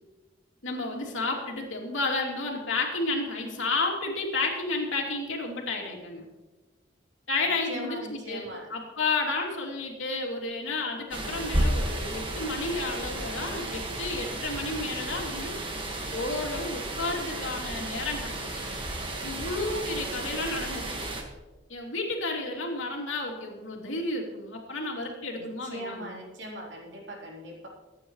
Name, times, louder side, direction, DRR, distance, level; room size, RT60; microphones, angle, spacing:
voice 1, 0.6-6.2 7.3-18.8 19.2-21.1 21.7-26.2, left 3 dB, 80° left, 0 dB, 2.9 m, -32 dB
voice 2, 7.7-8.7 25.4-27.7, equal, 65° right, -2 dB, 3.7 m, -40 dB
sound 1, 11.1-21.2, right 1 dB, 25° right, 1.7 m, -33 dB
23.5 x 9.2 x 3.2 m, 1.2 s
head